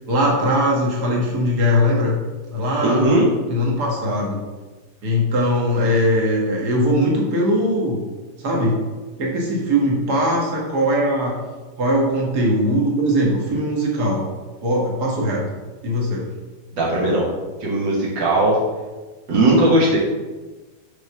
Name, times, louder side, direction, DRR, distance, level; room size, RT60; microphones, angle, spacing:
voice 1, 0.1-2.2 2.5-3.1 3.5-4.4 5.0-8.0 8.4-8.8 9.2-11.4 11.8-14.3 14.6-15.4 15.8-16.2, equal, 65° right, -3 dB, 2.1 m, -20 dB
voice 2, 2.8-3.3 16.7-17.3 17.6-18.6 19.3-20.0, right 1 dB, 85° right, -4 dB, 2.1 m, -17 dB
6.2 x 4.9 x 5.7 m, 1.3 s
omnidirectional pair, 1.9 m